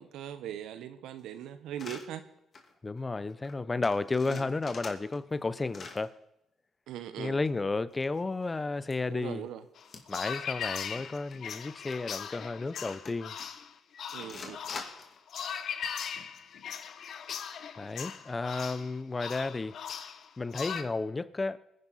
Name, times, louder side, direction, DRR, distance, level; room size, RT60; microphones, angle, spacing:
voice 1, 0.0-2.3 4.3-4.5 6.9-7.4 9.1-9.6 14.1-14.6, right 10 dB, 85° right, 1.0 m, -40 dB
sound 1, 1.7-2.1 2.5-2.7 3.0-3.1 3.3-3.5 3.8-5.4 5.6-6.1 7.4-8.4 8.9-9.0 9.8-10.2 10.5-10.6 11.0-11.3 11.9-12.0 12.8-13.4 14.2-15.2, left 4 dB, 45° left, 2.3 m, -45 dB
voice 2, 2.8-6.2 7.2-9.5 10.1-13.3 17.8-19.8 20.4-21.6, left 3 dB, 25° left, 0.6 m, -32 dB
sound 2, 9.8-20.8, left 7 dB, 65° left, 0.9 m, -39 dB
23.0 x 10.5 x 4.1 m
cardioid pair, 90°, 0 cm